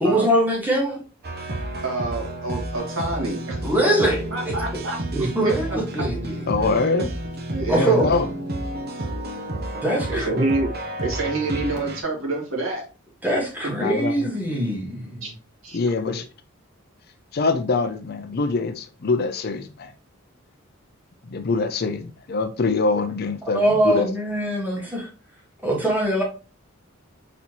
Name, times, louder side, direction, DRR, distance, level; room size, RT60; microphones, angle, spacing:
voice 1, 0.0-1.0 3.6-4.5 5.1-6.3 7.7-8.1 9.8-10.4 13.2-15.2 23.4-25.1 25.6-26.2, right 1 dB, 10° right, 1.6 m, -22 dB
sound 1, 1.2-12.0, right 1 dB, 50° right, 0.9 m, -31 dB
voice 2, 1.8-3.6 4.3-5.8 6.3-6.7 7.0-7.1 7.5-8.1 10.1-10.7 11.0-12.9 15.2-15.3 15.6-15.8, right 2 dB, 70° right, 1.9 m, -27 dB
voice 3, 6.5-7.1 7.7-8.3 13.8-14.3 15.7-16.3 17.3-19.9 21.3-24.1, left 3 dB, 50° left, 0.5 m, -24 dB
4.2 x 4.1 x 3.0 m
head